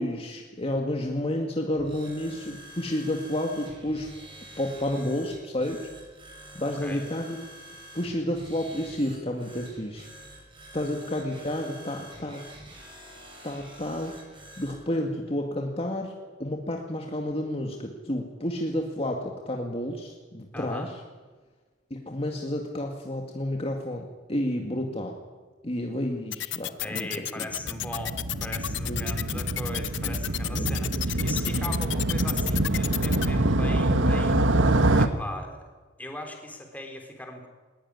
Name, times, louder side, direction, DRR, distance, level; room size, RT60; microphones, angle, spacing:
voice 1, 0.0-4.1 4.6-5.9 6.5-7.4 7.9-10.1 10.7-12.5 13.4-14.2 14.6-20.9 21.9-25.2 25.6-27.1 27.4-27.5 28.9-29.0 29.3-29.4 30.0-30.1 30.6-30.7, left 1 dB, 30° left, 2 dB, 2.1 m, -30 dB
sound 1, 1.8-14.8, right 1 dB, 25° right, 6.8 m, -47 dB
voice 2, 6.6-7.0 20.5-20.9 26.8-34.4 35.0-35.7 36.0-37.5, left 1 dB, 10° left, 3 dB, 3.9 m, -39 dB
sound 2, 26.3-33.3, left 14 dB, 70° left, 0.8 m, -31 dB
Motorcycle, 27.5-35.1, right 2 dB, 85° right, 1.6 m, -25 dB
20.5 x 20.5 x 9.7 m, 1.3 s
head